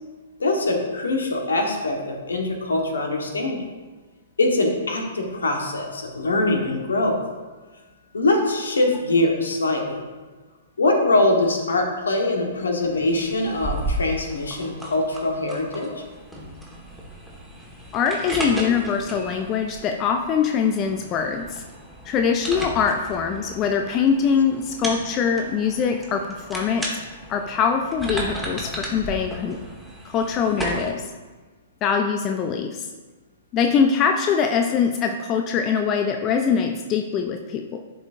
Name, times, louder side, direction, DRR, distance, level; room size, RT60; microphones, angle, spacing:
voice 1, 0.4-3.6 4.4-7.2 8.1-10.0 10.8-16.0, left 2 dB, 75° left, 2 dB, 1.3 m, -23 dB
sound 1, 12.8-30.9, right 1 dB, ahead, 1.5 m, -34 dB
voice 2, 17.9-21.6 22.1-26.9 27.3-29.6 30.0-31.1 31.8-32.9 33.5-37.8, left 6 dB, 30° left, 5 dB, 0.5 m, -23 dB
11.5 x 4.5 x 2.6 m, 1.3 s
figure-of-eight pair, 115°, 0 cm